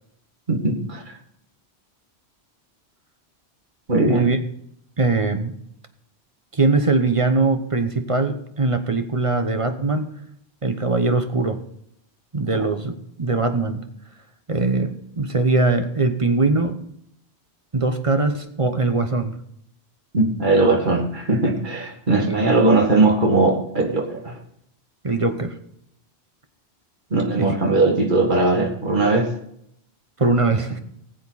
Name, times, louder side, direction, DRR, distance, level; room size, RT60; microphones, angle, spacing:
voice 1, 0.5-1.0 3.9-4.2 20.1-24.4 27.1-29.3, right 2 dB, 45° right, 1 dB, 2.1 m, -19 dB
voice 2, 4.1-4.4 5.0-5.6 6.5-10.1 10.6-11.6 12.3-13.8 14.5-16.8 17.7-19.4 22.2-22.5 25.0-25.6 27.4-27.6 30.2-30.8, right 3 dB, 30° right, 8 dB, 0.9 m, -21 dB
19.5 x 7.8 x 4.1 m, 0.73 s
omnidirectional pair, 1.1 m